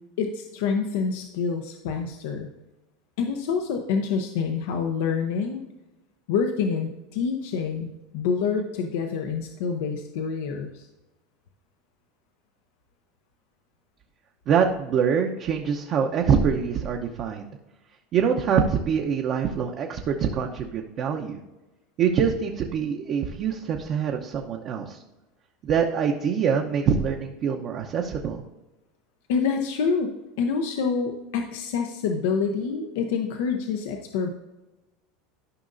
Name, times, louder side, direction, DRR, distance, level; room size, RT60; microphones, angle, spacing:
voice 1, 0.2-2.5 3.2-5.6 6.3-10.9 29.3-34.3, left 5 dB, 75° left, 4 dB, 0.7 m, -27 dB
voice 2, 14.5-17.5 18.1-21.4 22.0-25.0 25.6-28.4, right 7 dB, 45° right, 1 dB, 0.8 m, -24 dB
13.0 x 5.4 x 2.6 m, 1.0 s
supercardioid pair, 110°, 0 cm